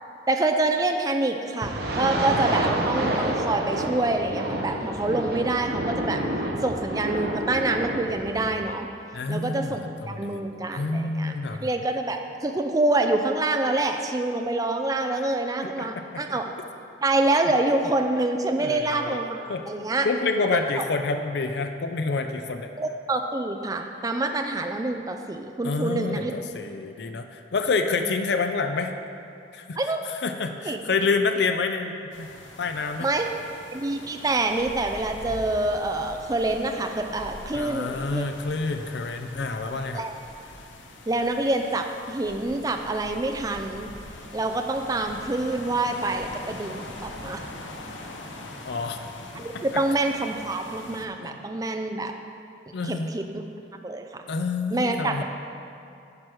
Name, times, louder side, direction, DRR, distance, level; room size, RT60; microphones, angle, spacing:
voice 1, 0.3-6.2 6.6-8.9 9.3-16.4 17.0-20.1 20.5-20.6 22.8-26.3 29.8-30.0 30.6-30.8 33.0-33.3 33.7-38.3 39.9-40.2 41.1-43.9 44.3-47.5 49.3-52.1 52.8-53.2 53.8-54.2 54.7-55.2, right 2 dB, 20° right, 4 dB, 0.4 m, -26 dB
sound 1, 1.6-8.5, right 1 dB, 55° right, 0.9 m, -28 dB
voice 2, 9.1-11.7 15.8-15.9 16.1-16.2 18.6-19.2 19.5-19.6 20.0-22.7 25.6-28.9 29.5-29.8 30.2-32.3 32.6-33.1 37.5-40.0 48.7-49.0 51.2-51.4 52.7-53.1 54.3-55.2, left 4 dB, 65° left, 6 dB, 0.5 m, -28 dB
sound 2, 32.1-51.1, left 2 dB, 85° left, 0.8 m, -42 dB
10.5 x 4.8 x 6.2 m, 2.6 s
head